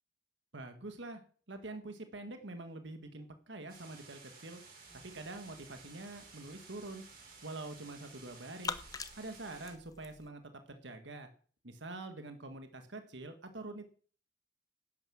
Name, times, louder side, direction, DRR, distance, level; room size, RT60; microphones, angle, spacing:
voice 1, 0.5-1.2 1.5-4.6 5.0-7.0 7.4-8.8 9.2-10.4 10.7-11.3 11.6-13.8, right 2 dB, 70° right, 7 dB, 1.6 m, -45 dB
sound 1, 3.7-9.7, right 4 dB, 50° right, 5.8 m, -55 dB
sound 2, 4.8-10.3, left 4 dB, 20° left, 0.8 m, -48 dB
11.5 x 9.6 x 6.3 m, 0.44 s
head